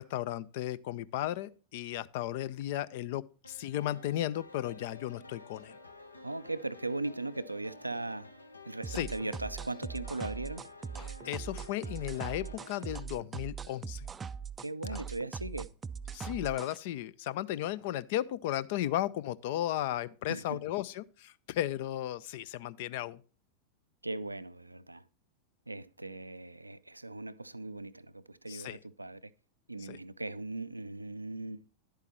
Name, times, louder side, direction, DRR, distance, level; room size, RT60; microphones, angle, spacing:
voice 1, 0.0-5.8 8.9-9.1 11.0-14.1 14.9-15.0 16.1-23.2 28.5-28.8 29.9-30.0, left 13 dB, 50° left, 0.4 m, -35 dB
sound 1, 3.4-13.0, left 3 dB, 80° left, 0.8 m, -51 dB
voice 2, 6.2-8.3 8.7-10.6 14.6-15.7 20.3-20.6 24.0-25.0 25.7-29.2 29.7-31.6, right 2 dB, 85° right, 0.4 m, -38 dB
sound 2, 8.8-16.8, right 6 dB, 20° right, 0.4 m, -41 dB
10.5 x 8.2 x 3.0 m
figure-of-eight pair, 90°, 0 cm